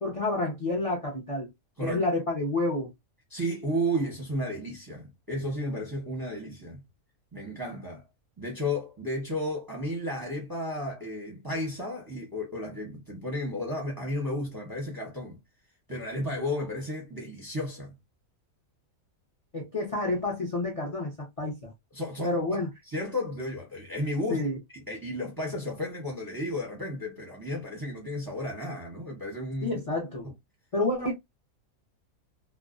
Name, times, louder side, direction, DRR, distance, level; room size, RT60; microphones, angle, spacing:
voice 1, 0.0-1.5 1.8-2.9 19.5-21.7 22.2-22.7 24.3-24.6 29.6-30.3 30.7-31.1, left 2 dB, 40° left, 0.5 m, -29 dB
voice 2, 3.3-6.8 7.3-8.0 8.4-15.4 15.9-17.9 21.9-24.4 24.9-29.8, equal, 20° right, 0.6 m, -33 dB
2.4 x 2.1 x 2.4 m
omnidirectional pair, 1.5 m